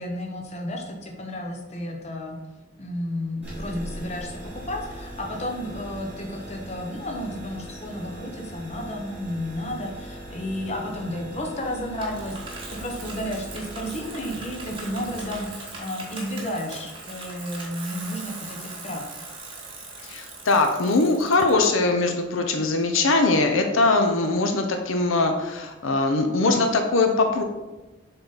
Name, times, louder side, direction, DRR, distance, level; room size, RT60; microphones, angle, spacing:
voice 1, 0.0-2.4 2.8-12.4 12.7-19.0, left 1 dB, 30° left, 1 dB, 0.8 m, -32 dB
sound 1, 3.4-15.4, equal, 10° right, 2.1 m, -40 dB
Bicycle, 12.0-21.6, right 3 dB, 25° right, 1.2 m, -40 dB
voice 2, 20.0-27.4, left 3 dB, 80° left, 5 dB, 0.6 m, -21 dB
6.8 x 3.9 x 4.0 m, 1.1 s
head